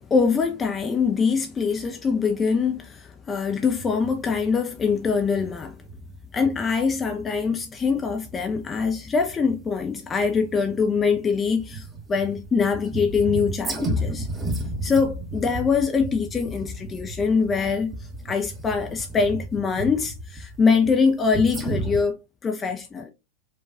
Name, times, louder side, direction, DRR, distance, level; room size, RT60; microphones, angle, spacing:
voice 1, 0.1-5.8 6.3-14.3 14.8-22.2 22.4-23.1, left 5 dB, 20° left, 0.4 m, -23 dB
sound 1, 3.5-22.0, right 1 dB, 20° right, 0.8 m, -34 dB
4.4 x 2.3 x 2.4 m
figure-of-eight pair, 90°, 0 cm